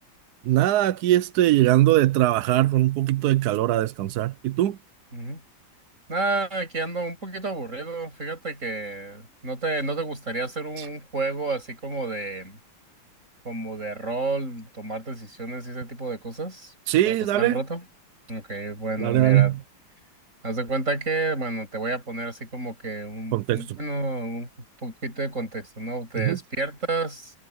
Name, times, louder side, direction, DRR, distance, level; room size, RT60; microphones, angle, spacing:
voice 1, 0.5-4.8 10.8-10.9 16.9-17.6 19.0-19.6 23.3-23.8 26.2-26.4, right 15 dB, 70° right, 1.0 m, -21 dB
voice 2, 5.1-5.4 6.1-12.6 13.4-16.7 17.1-17.8 18.3-19.6 20.4-24.5 24.8-27.3, right 3 dB, 40° right, 7.6 m, -30 dB
omnidirectional pair, 2.1 m